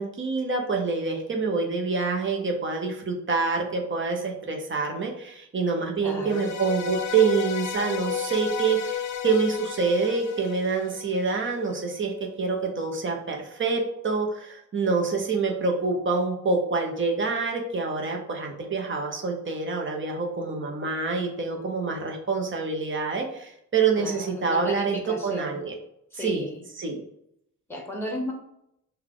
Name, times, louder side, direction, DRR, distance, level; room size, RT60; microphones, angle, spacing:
voice 1, 0.0-25.7 26.2-26.5 26.8-27.0, right 4 dB, 40° right, 1 dB, 0.8 m, -26 dB
voice 2, 6.0-6.5 24.0-25.6 26.1-26.6 27.7-28.3, left 1 dB, 5° left, 1 dB, 0.9 m, -34 dB
sound 1, 6.3-11.5, left 7 dB, 60° left, 0.5 m, -33 dB
5.5 x 2.3 x 3.7 m, 0.77 s
wide cardioid pair, 165°, 31 cm